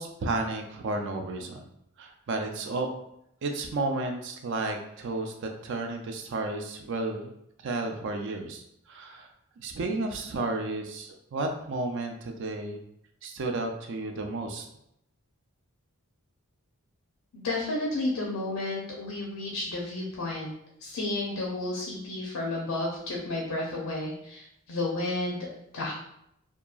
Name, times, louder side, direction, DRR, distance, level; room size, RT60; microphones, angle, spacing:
voice 1, 0.0-1.6 2.0-2.9 3.4-7.3 7.6-9.3 9.6-12.8 13.2-14.7, right 2 dB, 55° right, 4 dB, 0.4 m, -32 dB
voice 2, 17.3-20.5 20.8-25.9, left 2 dB, 80° left, -2 dB, 0.5 m, -32 dB
2.8 x 2.2 x 2.3 m, 0.77 s
head